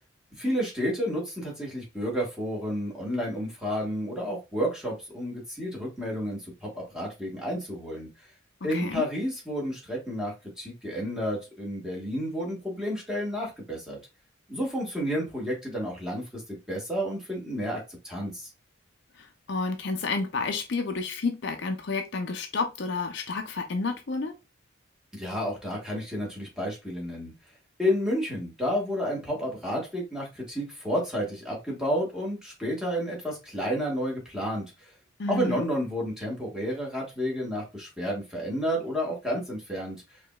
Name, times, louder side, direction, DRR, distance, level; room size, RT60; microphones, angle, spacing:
voice 1, 0.4-8.3 8.6-14.0 14.5-18.5 25.1-27.3 27.8-34.9 35.3-40.2, equal, 5° right, 1.3 m, -31 dB
voice 2, 8.7-9.0 19.2-24.3 35.2-35.6, left 3 dB, 55° left, 0.5 m, -30 dB
4.7 x 3.0 x 2.3 m
head